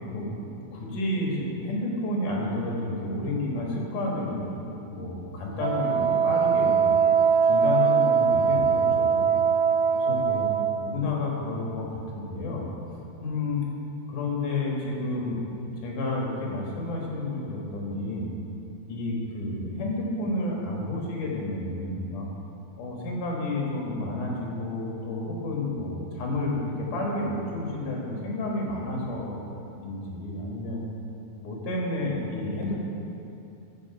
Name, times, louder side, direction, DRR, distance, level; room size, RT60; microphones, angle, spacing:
voice 1, 0.1-6.9 7.5-9.3 9.9-10.5 10.8-12.7 13.2-13.6 14.1-15.5 15.8-18.3 18.9-22.3 22.8-29.5 29.8-30.8 31.4-32.8, left 2 dB, 60° left, -2 dB, 2.9 m, -30 dB
Wind instrument woodwind instrument, 5.6-10.8, right 6 dB, 80° right, 2.5 m, -22 dB
13.0 x 6.9 x 4.8 m, 2.8 s
omnidirectional pair, 4.4 m